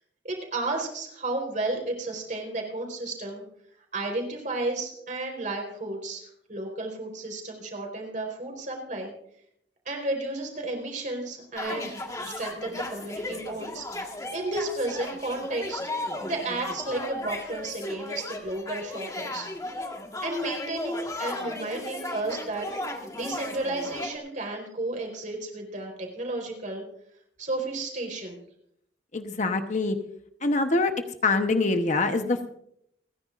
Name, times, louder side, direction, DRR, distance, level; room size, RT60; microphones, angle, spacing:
voice 1, 0.2-3.4 3.9-9.1 9.8-15.8 16.2-19.5 20.2-22.7 23.1-26.8 27.4-28.4, right 2 dB, 45° right, 1 dB, 4.3 m, -33 dB
sound 1, 11.6-24.2, left 2 dB, 20° left, 1.6 m, -36 dB
voice 2, 29.1-30.0 30.4-30.9 31.2-32.5, left 3 dB, 40° left, 6 dB, 1.0 m, -24 dB
29.5 x 10.5 x 2.5 m, 0.70 s
head